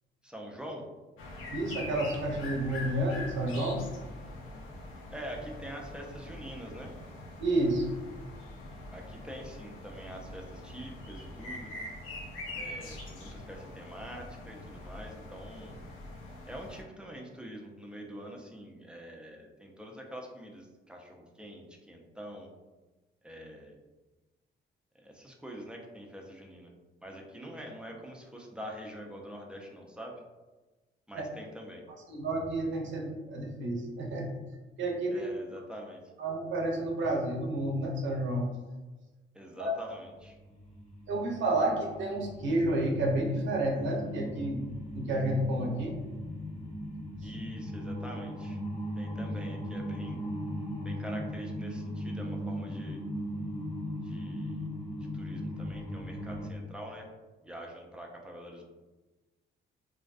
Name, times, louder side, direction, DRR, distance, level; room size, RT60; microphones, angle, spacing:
voice 1, 0.2-0.9 5.1-6.9 8.9-11.7 12.5-15.7 16.5-22.5 23.2-23.8 24.9-26.7 27.0-30.2 31.1-31.8 35.1-36.0 39.3-40.4 47.2-48.6 49.0-50.2 50.8-53.0 54.0-54.7 55.0-57.1 57.4-58.6, equal, 5° right, 0 dB, 0.4 m, -45 dB
sound 1, 1.2-16.8, left 1 dB, 85° left, 0.5 m, -43 dB
voice 2, 1.5-3.8 7.4-7.9 31.1-31.2 32.1-34.3 34.8-35.2 36.2-38.5 39.6-39.7 41.1-44.6 44.9-46.0, right 1 dB, 70° right, 0 dB, 0.6 m, -30 dB
sound 2, 39.8-56.5, equal, 30° left, 0.7 m, -38 dB
2.5 x 2.2 x 2.4 m, 1.2 s
cardioid pair, 90°, 20 cm